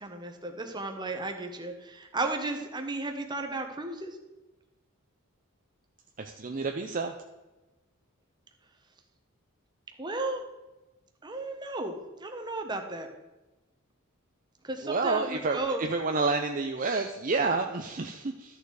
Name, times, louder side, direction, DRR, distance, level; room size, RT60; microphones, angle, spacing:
voice 1, 0.0-4.2 10.0-10.4 11.2-13.1 14.6-15.8, right 2 dB, 20° right, 4 dB, 1.1 m, -34 dB
voice 2, 6.2-7.1 14.8-18.6, right 3 dB, 35° right, 4 dB, 0.6 m, -29 dB
13.0 x 6.8 x 4.8 m, 1.1 s
head